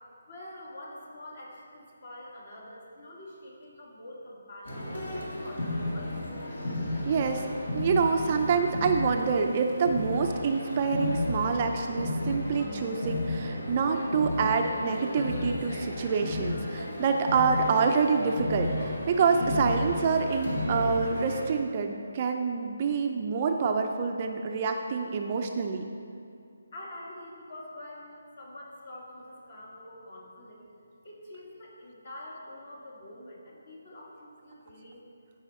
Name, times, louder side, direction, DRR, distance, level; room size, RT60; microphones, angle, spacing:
voice 1, 0.3-6.2 26.7-30.6 31.0-35.0, left 1 dB, 45° left, -3 dB, 2.3 m, -46 dB
sound 1, 4.7-21.5, left 1 dB, 65° left, 2.4 m, -33 dB
voice 2, 7.0-7.5 7.7-25.9, right 5 dB, 30° right, 4 dB, 0.5 m, -27 dB
14.0 x 5.5 x 4.3 m, 2.4 s
hypercardioid pair, 165°, 0 cm